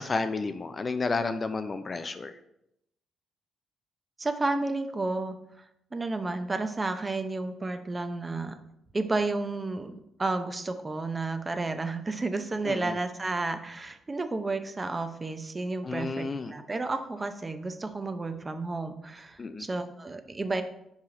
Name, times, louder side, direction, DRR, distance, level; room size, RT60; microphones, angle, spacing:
voice 1, 0.0-2.3 12.6-13.0 15.8-16.5 19.4-19.7, left 3 dB, 35° left, 10 dB, 0.4 m, -31 dB
voice 2, 4.2-5.4 5.9-8.6 8.9-20.6, right 3 dB, 25° right, 8 dB, 0.6 m, -31 dB
5.6 x 4.8 x 3.8 m, 0.80 s
cardioid pair, 90°, 0 cm